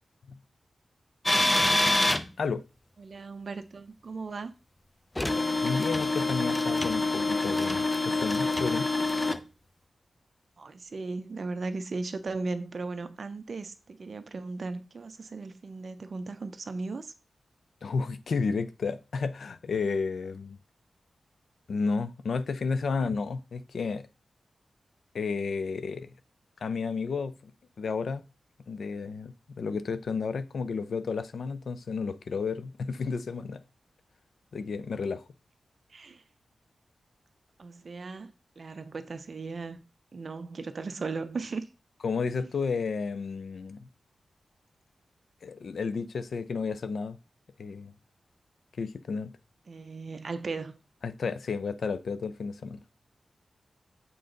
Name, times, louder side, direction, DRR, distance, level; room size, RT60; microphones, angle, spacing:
sound 1, 1.3-2.2 5.2-9.4, left 2 dB, 15° left, 0.5 m, -26 dB
voice 1, 3.0-4.5 10.6-17.1 35.9-36.2 37.6-39.8 40.1-41.7 42.4-42.5 49.7-50.7, right 3 dB, 50° right, 0.6 m, -37 dB
voice 2, 5.6-8.9 17.8-20.6 21.7-24.1 25.1-26.1 26.6-27.5 27.8-28.3 28.7-33.6 34.5-35.2 42.0-43.9 45.4-47.2 47.6-47.9 48.8-49.3 51.0-52.8, left 4 dB, 70° left, 0.5 m, -32 dB
7.7 x 3.9 x 3.9 m
wide cardioid pair, 165°, 0 cm